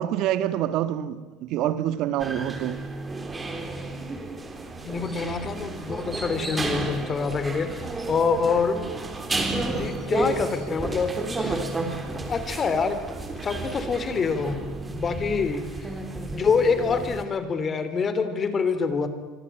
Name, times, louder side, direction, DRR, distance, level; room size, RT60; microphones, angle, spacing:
voice 1, 0.0-2.9, right 11 dB, 55° right, 1.7 m, -26 dB
sound 1, 2.2-17.2, right 2 dB, 15° right, 3.6 m, -32 dB
voice 2, 4.8-8.8 9.7-11.6 12.1-13.0 13.4-14.6 14.9-15.9 16.2-19.1, left 5 dB, 25° left, 3.2 m, -26 dB
25.5 x 24.5 x 9.2 m
supercardioid pair, 130°, 0 cm